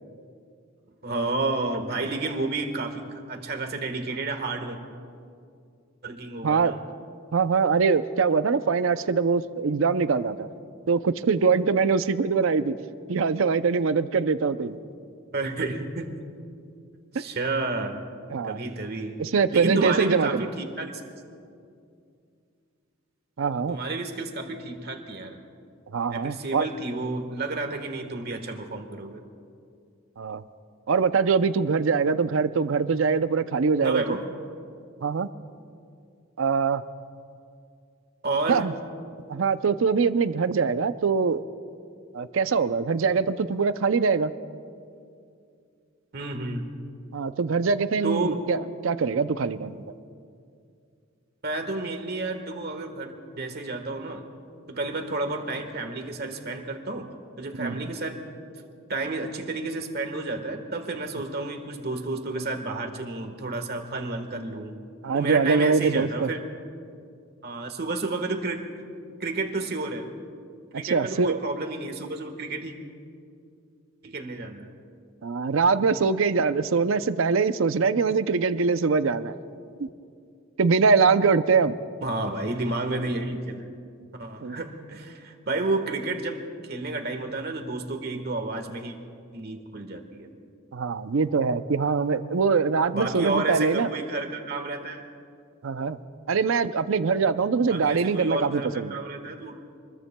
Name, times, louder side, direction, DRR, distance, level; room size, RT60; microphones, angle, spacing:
voice 1, 1.0-4.8 6.0-6.8 15.3-16.2 17.1-18.0 18.4-19.2 19.5-20.9 23.7-25.4 26.1-29.2 33.8-34.3 38.2-38.6 46.1-46.6 48.0-48.4 51.4-54.2 54.7-57.1 57.4-58.2 58.9-64.7 65.1-66.4 67.4-68.9 69.2-70.1 70.7-72.7 74.0-74.7 82.0-83.7 84.1-88.9 89.3-90.3 92.9-95.0 97.7-99.6, right 2 dB, 50° right, 5 dB, 1.4 m, -31 dB
voice 2, 7.3-10.5 10.9-12.8 13.1-14.8 18.3-18.6 19.2-20.5 23.4-23.8 25.9-26.7 30.2-30.4 30.9-34.0 35.0-35.3 36.4-36.8 38.5-38.7 39.3-41.4 42.1-44.3 47.1-48.6 48.8-49.8 57.6-57.8 65.0-66.3 70.9-71.4 75.2-79.3 79.8-79.9 80.6-81.8 84.4-84.6 90.7-93.9 95.6-96.0 96.3-98.9, right 5 dB, 70° right, 12 dB, 0.5 m, -23 dB
26.5 x 21.0 x 2.2 m, 2.4 s
head